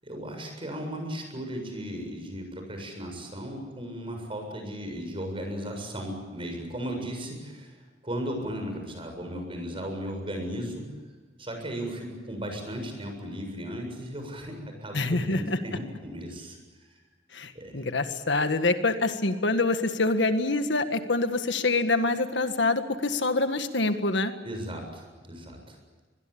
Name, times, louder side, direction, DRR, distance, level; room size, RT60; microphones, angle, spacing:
voice 1, 0.0-7.8 8.0-10.9 11.4-16.6 17.5-17.8 24.4-25.8, equal, 30° right, 4 dB, 7.4 m, -36 dB
voice 2, 14.9-15.6 17.3-24.3, left 3 dB, 75° left, 8 dB, 1.7 m, -26 dB
24.0 x 21.5 x 8.7 m, 1.3 s
head